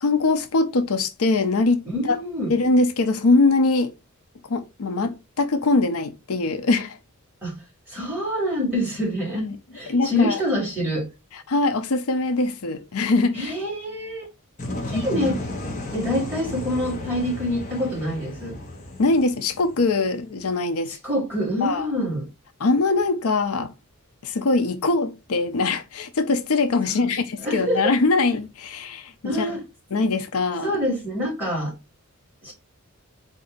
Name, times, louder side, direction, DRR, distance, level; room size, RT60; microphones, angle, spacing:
voice 1, 0.0-2.2 2.5-3.9 4.5-7.0 9.3-9.6 9.9-10.4 11.3-13.5 14.9-15.1 19.0-21.0 21.6-21.9 22.6-23.7 24.2-29.6 29.9-30.7, left 3 dB, 75° left, 0.6 m, -22 dB
voice 2, 1.9-2.5 7.4-7.6 7.9-9.5 9.7-11.1 13.3-14.3 14.7-15.4 15.9-18.6 20.9-22.3 26.9-27.9 29.2-29.6 30.6-31.7 32.4-32.5, equal, 10° right, 2.4 m, -26 dB
sound 1, 14.6-20.5, left 1 dB, 35° left, 1.0 m, -33 dB
4.3 x 2.7 x 3.8 m
head